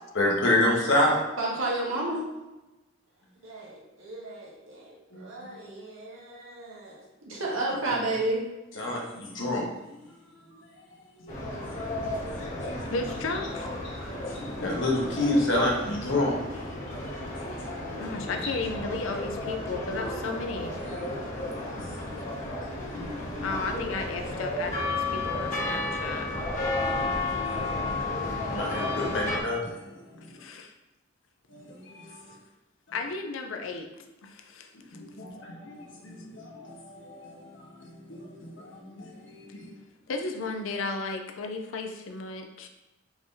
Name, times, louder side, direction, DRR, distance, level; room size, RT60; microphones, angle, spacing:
voice 1, 0.1-1.2 5.1-5.6 8.7-10.0 10.5-11.3 11.7-12.0 12.7-12.8 13.9-17.0 17.3-17.6 18.0-18.2 19.9-20.2 20.8-22.6 22.9-23.6 26.8-30.3 31.5-32.3 34.9-39.7, left 1 dB, 65° left, -2 dB, 1.1 m, -31 dB
voice 2, 1.4-2.3 3.4-8.4, right 2 dB, 80° right, -3 dB, 1.2 m, -32 dB
sound 1, 11.3-29.4, left 2 dB, 35° left, 1.1 m, -33 dB
voice 3, 12.9-13.7 18.0-20.7 23.4-26.3 30.2-30.7 32.9-33.9 34.2-35.0 40.1-42.7, left 3 dB, 80° left, 4 dB, 0.5 m, -34 dB
4.7 x 2.7 x 3.7 m, 1.0 s
head